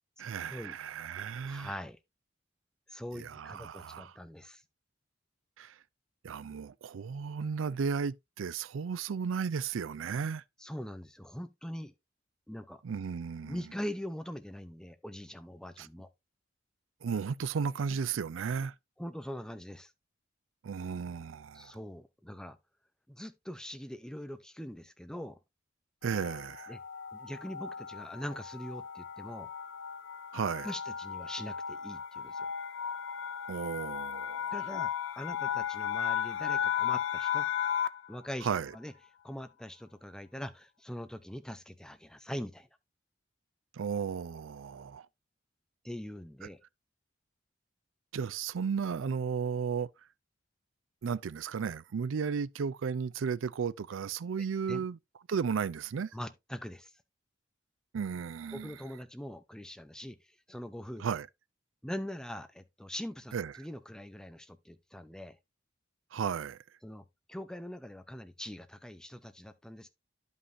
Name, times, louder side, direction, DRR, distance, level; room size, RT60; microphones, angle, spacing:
voice 1, 0.2-1.7 3.1-4.1 5.6-5.7 6.2-10.4 12.8-13.6 15.8-15.9 17.0-18.7 20.6-21.7 26.0-26.7 30.3-30.7 33.5-34.5 38.4-38.7 43.7-45.1 48.1-49.9 51.0-55.0 55.3-56.1 57.9-58.8 61.0-61.3 63.3-63.5 66.1-66.6, right 6 dB, 90° right, 0.4 m, -34 dB
voice 2, 1.4-2.0 2.9-4.6 10.6-11.9 12.5-12.8 13.4-16.1 18.6-18.7 19.0-19.9 21.5-22.6 23.1-25.4 26.7-26.8 27.1-29.5 30.6-32.5 34.5-37.5 38.1-38.5 38.7-38.9 39.2-42.7 45.8-46.6 54.4-54.9 56.1-56.9 58.5-61.0 61.8-65.4 66.8-69.9, equal, 5° left, 0.6 m, -42 dB
sound 1, 26.0-38.1, left 8 dB, 70° left, 0.4 m, -35 dB
11.5 x 5.4 x 2.6 m
head